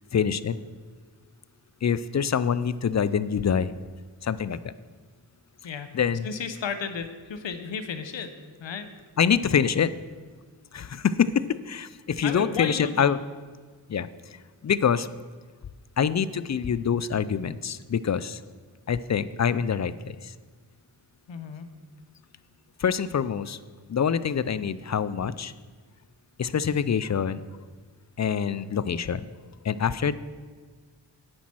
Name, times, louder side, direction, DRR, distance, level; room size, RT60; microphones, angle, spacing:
voice 1, 0.1-0.6 1.8-3.7 4.2-4.7 5.9-6.3 9.2-9.9 10.7-13.2 13.9-14.1 14.6-15.1 16.0-18.4 18.9-20.3 22.8-23.6 23.9-25.5 26.4-27.5 28.2-29.3 29.6-30.2, left 7 dB, 40° left, 16 dB, 0.4 m, -25 dB
voice 2, 6.2-8.3 8.6-8.9 12.2-13.2 21.3-21.7, left 6 dB, 80° left, 10 dB, 0.9 m, -33 dB
8.9 x 7.3 x 6.0 m, 1.5 s
wide cardioid pair, 70°, 44 cm